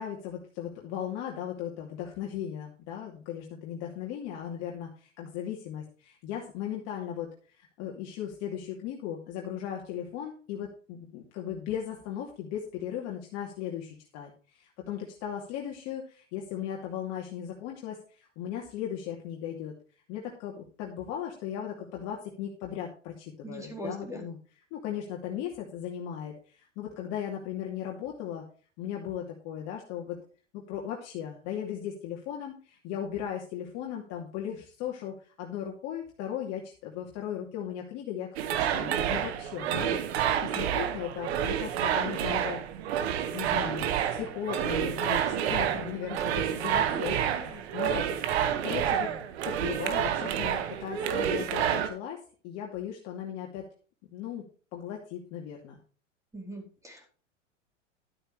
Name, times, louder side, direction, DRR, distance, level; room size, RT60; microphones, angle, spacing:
voice 1, 0.0-7.3 7.6-19.7 20.1-24.4 24.7-28.4 28.8-30.2 30.5-38.3 38.6-42.6 43.3-48.1 48.6-49.1 49.4-53.6 54.1-54.4 54.7-55.8, left 9 dB, 45° left, -1 dB, 2.7 m, -37 dB
voice 2, 23.4-24.2 46.2-46.3 46.9-47.0 56.3-57.1, equal, 10° right, 0 dB, 4.2 m, -40 dB
sound 1, 38.4-51.9, right 9 dB, 60° right, 1.8 m, -29 dB
13.0 x 9.0 x 3.3 m, 0.39 s
hypercardioid pair, 100°, 37 cm